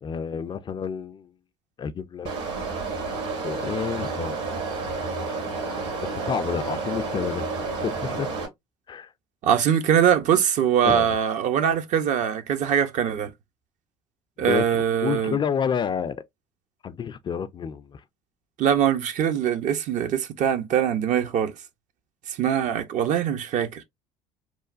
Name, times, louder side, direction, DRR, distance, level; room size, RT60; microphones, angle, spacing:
voice 1, 0.0-1.3 1.8-2.3 3.4-4.4 6.0-7.5 7.8-8.3 8.9-9.1 10.8-11.2 14.4-16.2 16.8-18.0, left 7 dB, 30° left, 0.3 m, -29 dB
sound 1, 2.3-8.5, right 4 dB, 70° right, 1.7 m, -30 dB
voice 2, 9.4-13.3 14.4-15.4 18.6-21.5 22.3-23.8, right 9 dB, 50° right, 0.6 m, -22 dB
3.0 x 2.2 x 2.4 m
hypercardioid pair, 65°, 16 cm